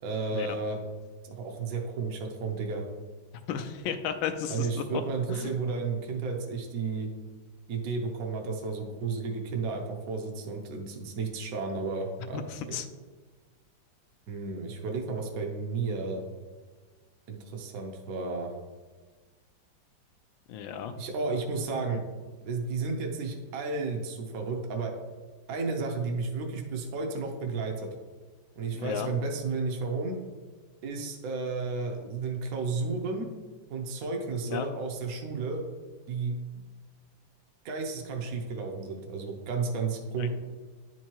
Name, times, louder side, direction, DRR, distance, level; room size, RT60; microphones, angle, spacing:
voice 1, 0.0-0.8 1.2-2.8 4.5-7.1 7.7-12.4 12.7-12.8 14.3-16.2 17.3-18.5 21.0-22.0 22.4-24.9 25.5-27.9 28.6-30.2 30.8-33.3 33.7-35.6 36.1-36.4 37.6-40.3, right 4 dB, 60° right, 2 dB, 1.0 m, -32 dB
voice 2, 3.5-5.0 5.3-5.5 12.3-12.9 20.5-21.0 21.9-22.0 28.7-29.1 34.5-34.7 40.2-40.3, left 8 dB, 80° left, 7 dB, 1.3 m, -34 dB
10.0 x 4.6 x 2.9 m, 1.4 s
omnidirectional pair, 2.1 m